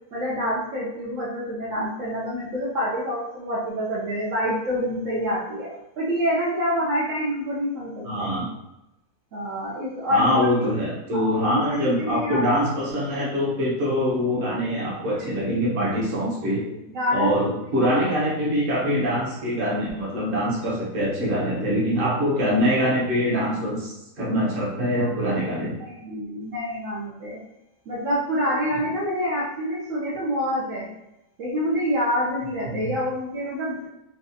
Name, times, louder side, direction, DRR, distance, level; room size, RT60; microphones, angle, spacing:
voice 1, 0.1-8.3 9.3-10.5 11.1-12.5 15.2-15.6 16.6-17.5 25.0-25.3 25.8-27.4 27.9-30.9 31.4-33.9, equal, 65° right, -6 dB, 1.0 m, -27 dB
voice 2, 8.0-8.4 10.1-16.6 17.1-25.8 32.7-32.9, equal, 40° right, -5 dB, 1.1 m, -24 dB
4.0 x 2.3 x 2.7 m, 0.89 s
omnidirectional pair, 1.6 m